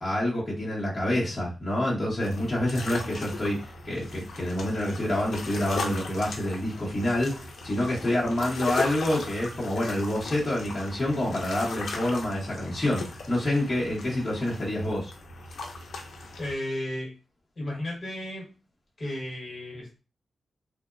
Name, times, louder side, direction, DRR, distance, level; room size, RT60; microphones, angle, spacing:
voice 1, 0.0-3.6 3.8-15.1, left 1 dB, 15° left, -8 dB, 0.8 m, -27 dB
sound 1, 2.2-16.5, left 3 dB, 65° left, 0.4 m, -38 dB
voice 2, 16.4-17.1 17.6-18.4 19.0-20.0, left 1 dB, 40° left, -3 dB, 0.9 m, -33 dB
2.8 x 2.0 x 2.3 m, 0.32 s
wide cardioid pair, 180°, 0 cm